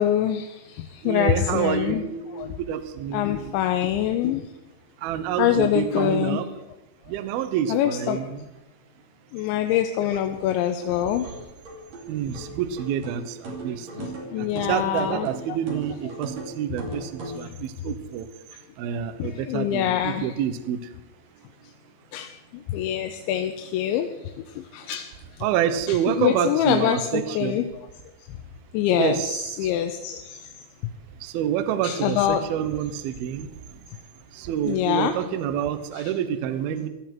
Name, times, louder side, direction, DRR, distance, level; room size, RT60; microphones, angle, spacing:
voice 1, 0.0-2.0 2.3-2.5 3.1-4.4 5.4-6.4 7.7-8.2 9.3-11.3 14.0-15.3 19.2-20.4 22.1-22.3 22.7-24.1 24.6-25.1 25.9-27.6 28.7-30.2 31.8-32.4 34.6-35.1 36.0-36.1, left 11 dB, 85° left, 6 dB, 3.0 m, -25 dB
voice 2, 1.0-3.6 5.0-6.4 7.1-8.4 10.0-10.2 12.1-18.3 18.8-20.8 25.4-27.6 28.9-29.4 31.2-33.5 34.4-36.9, right 9 dB, 75° right, 10 dB, 2.4 m, -28 dB
sound 1, 10.8-17.5, right 2 dB, 40° right, 3.7 m, -38 dB
17.5 x 13.0 x 4.5 m, 0.98 s
omnidirectional pair, 5.3 m